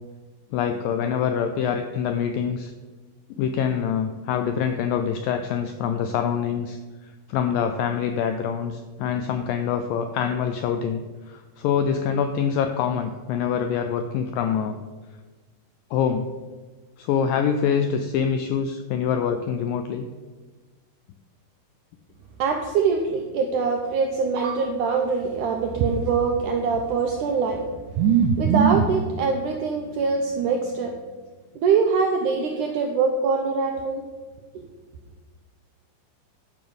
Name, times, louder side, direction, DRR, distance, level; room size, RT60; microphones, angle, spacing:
voice 1, 0.5-2.7 3.4-6.8 7.3-11.0 11.3-14.8 15.9-16.3 17.0-20.1, left 7 dB, 85° left, 7 dB, 1.9 m, -25 dB
voice 2, 22.4-27.7 28.0-30.9 31.6-34.0 34.6-34.7, right 5 dB, 90° right, 3 dB, 1.7 m, -23 dB
12.0 x 5.3 x 6.9 m, 1.3 s
omnidirectional pair, 4.7 m